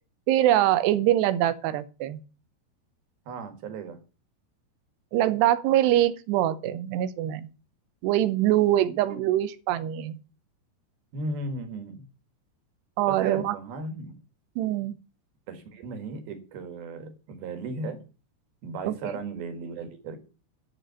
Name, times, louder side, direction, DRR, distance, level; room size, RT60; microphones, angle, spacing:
voice 1, 0.3-2.2 5.1-7.5 8.0-10.2 13.0-13.6 14.6-15.0 18.8-19.0, right 13 dB, 80° right, 2.7 m, -23 dB
voice 2, 3.3-4.0 9.1-9.2 11.1-12.0 13.1-14.2 15.5-18.0 18.6-20.2, right 3 dB, 65° right, 3.4 m, -35 dB
12.0 x 5.8 x 6.9 m
omnidirectional pair, 5.1 m